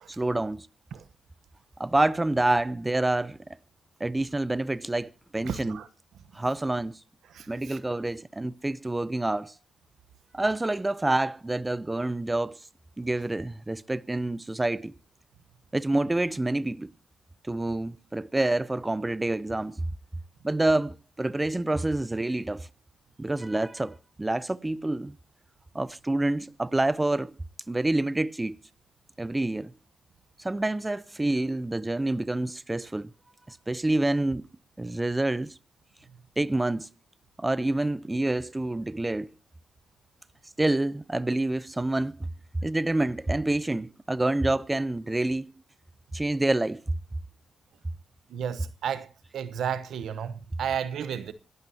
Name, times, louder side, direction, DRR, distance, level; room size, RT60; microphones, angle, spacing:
voice 1, 0.1-0.7 1.8-3.4 4.0-5.8 6.3-7.0 7.5-9.5 10.3-12.6 13.0-15.0 15.7-16.9 17.4-19.8 20.4-22.7 23.2-25.1 25.7-27.3 27.7-28.6 29.2-29.7 30.4-33.1 33.5-34.5 34.8-35.5 36.4-36.9 37.4-39.3 40.6-42.3 42.6-45.4 46.1-46.8, right 2 dB, 20° right, 0.6 m, -27 dB
voice 2, 5.4-5.9 7.3-7.8 48.3-51.3, right 8 dB, 85° right, 1.0 m, -33 dB
26.0 x 12.0 x 2.8 m
cardioid pair, 60°, 0 cm